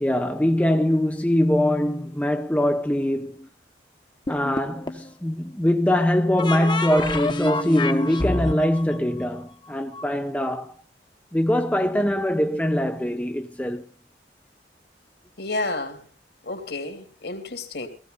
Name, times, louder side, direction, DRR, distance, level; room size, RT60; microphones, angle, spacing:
voice 1, 0.0-3.5 4.3-10.7 11.3-13.8, left 1 dB, 10° left, 0.7 m, -23 dB
sound 1, 4.3-5.1 6.4-10.0, left 2 dB, 25° left, 1.2 m, -28 dB
voice 2, 15.4-16.0 16.4-17.9, left 2 dB, 65° left, 3.1 m, -30 dB
16.5 x 16.0 x 4.0 m
head